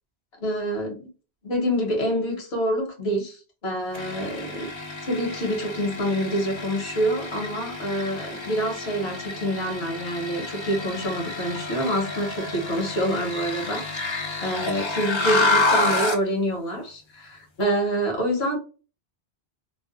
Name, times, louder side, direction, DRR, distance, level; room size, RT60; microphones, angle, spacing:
voice 1, 0.4-1.1 1.4-4.7 5.1-18.6, equal, 70° left, 1.2 m, -27 dB
sound 1, 3.9-16.3, left 2 dB, 40° left, 0.4 m, -29 dB
2.7 x 2.2 x 2.2 m
omnidirectional pair, 1.1 m